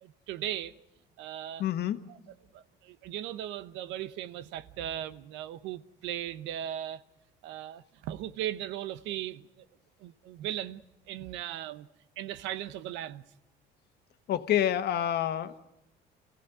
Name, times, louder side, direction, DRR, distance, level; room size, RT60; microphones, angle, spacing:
voice 1, 0.0-0.7 1.2-1.6 2.1-7.0 7.4-9.7 10.0-10.8 11.1-11.9 12.2-13.2, right 11 dB, 90° right, 0.9 m, -38 dB
voice 2, 1.6-2.0 14.3-15.6, left 11 dB, 60° left, 1.4 m, -28 dB
28.0 x 16.0 x 9.2 m
cardioid pair, 115°, 19 cm